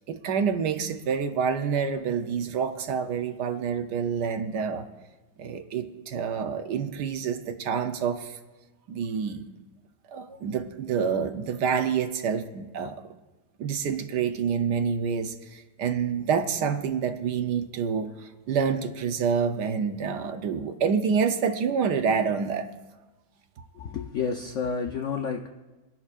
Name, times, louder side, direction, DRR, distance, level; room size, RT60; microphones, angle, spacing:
voice 1, 0.0-4.9 5.4-8.4 8.9-9.4 10.1-12.9 13.6-18.1 18.5-22.7, right 6 dB, 65° right, 7 dB, 1.2 m, -27 dB
voice 2, 23.8-25.5, left 6 dB, 80° left, 4 dB, 0.6 m, -30 dB
24.5 x 11.0 x 2.5 m, 1.2 s
omnidirectional pair, 2.1 m